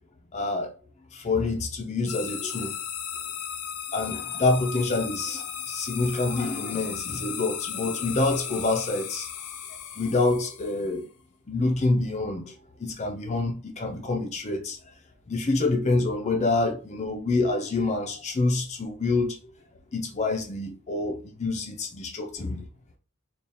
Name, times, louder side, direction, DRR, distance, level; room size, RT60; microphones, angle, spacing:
voice 1, 0.3-0.7 1.1-2.7 3.9-9.3 10.0-11.1 11.5-12.5 12.8-14.8 15.3-19.4 19.9-22.7, left 3 dB, 30° left, 0.5 m, -27 dB
sound 1, 2.1-11.0, left 9 dB, 85° left, 0.6 m, -36 dB
3.4 x 2.4 x 4.1 m
head